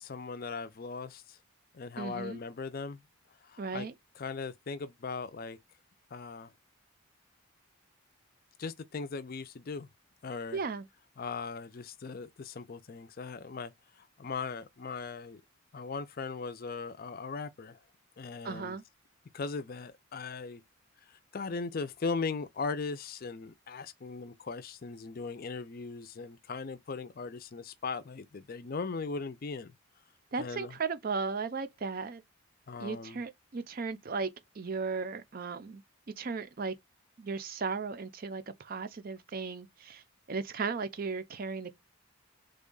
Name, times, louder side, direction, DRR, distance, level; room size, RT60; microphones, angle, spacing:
voice 1, 0.0-1.4 1.7-3.0 3.4-3.9 4.2-5.6 6.1-6.5 8.6-9.9 10.2-10.6 11.2-13.7 14.0-15.4 15.7-17.8 18.2-18.8 19.3-20.6 21.1-29.7 30.4-30.8 32.7-33.2, left 4 dB, 45° left, 0.4 m, -38 dB
voice 2, 2.0-2.4 3.6-3.9 10.5-10.9 18.4-18.8 30.3-32.2 32.8-34.3 34.6-35.8 36.2-36.7 37.2-40.0 40.3-41.7, right 4 dB, 45° right, 0.5 m, -36 dB
3.5 x 2.2 x 3.8 m
head